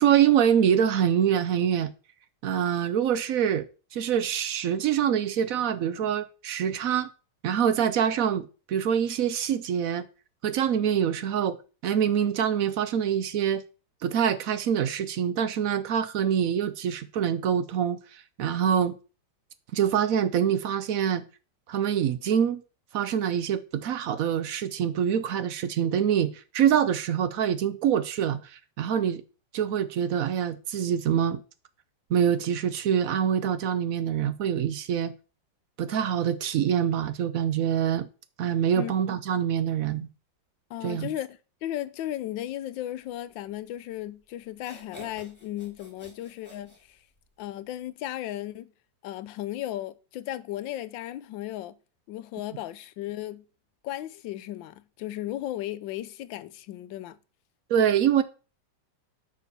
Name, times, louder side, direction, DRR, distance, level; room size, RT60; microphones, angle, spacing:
voice 1, 0.0-1.9 2.4-7.1 7.4-10.1 10.4-11.6 11.8-13.6 14.0-19.0 19.7-21.2 21.7-22.6 22.9-29.2 29.5-31.4 32.1-35.1 35.8-38.1 38.4-40.1 40.8-41.1 57.7-58.2, right 9 dB, 65° right, 0.8 m, -25 dB
voice 2, 40.7-47.0 47.4-48.7 49.0-51.8 52.1-53.4 53.8-57.2, left 13 dB, 85° left, 1.3 m, -35 dB
sound 1, 44.0-44.1 44.5-47.4, left 1 dB, 10° left, 2.3 m, -50 dB
6.6 x 5.0 x 6.7 m
omnidirectional pair, 2.0 m